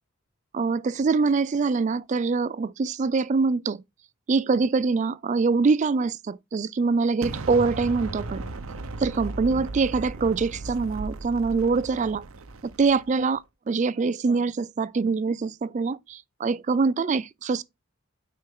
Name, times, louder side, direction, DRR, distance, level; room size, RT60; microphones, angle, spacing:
voice 1, 0.5-3.8 4.3-8.5 9.0-12.2 12.6-13.4 13.7-17.6, right 4 dB, 35° right, 0.3 m, -24 dB
Explosion, 7.2-13.2, right 2 dB, 85° right, 0.8 m, -36 dB
6.2 x 4.5 x 3.7 m
head